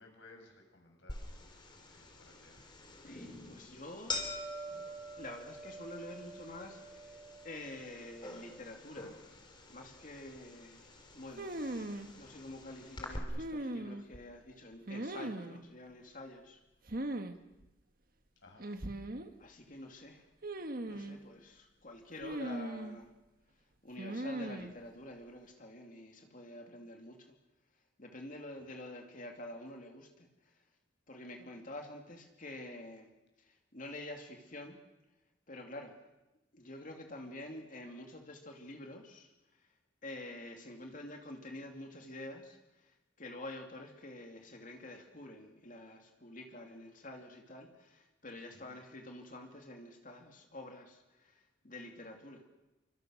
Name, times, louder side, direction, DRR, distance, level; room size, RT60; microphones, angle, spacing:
voice 1, 0.0-1.6 1.9-2.7 18.4-18.7 28.6-28.7 48.5-48.8, left 2 dB, 75° left, 2 dB, 7.1 m, -59 dB
sound 1, 1.1-13.2, left 1 dB, 25° left, 4.0 m, -46 dB
voice 2, 3.0-4.2 5.1-7.2 7.4-9.1 9.7-10.8 11.1-11.5 12.1-16.6 19.4-20.3 20.9-23.1 23.8-27.3 28.0-30.5 31.1-33.1 33.4-34.8 35.5-36.0 36.5-39.3 40.0-52.4, left 1 dB, 45° left, 3 dB, 2.8 m, -48 dB
sound 2, 11.4-12.1 13.4-14.2 14.9-15.6 16.9-17.3 17.6-17.7 18.6-19.3 20.4-21.2 22.2-23.0 24.0-24.7, right 1 dB, 50° right, 1.6 m, -39 dB
29.5 x 24.5 x 6.5 m, 0.98 s
head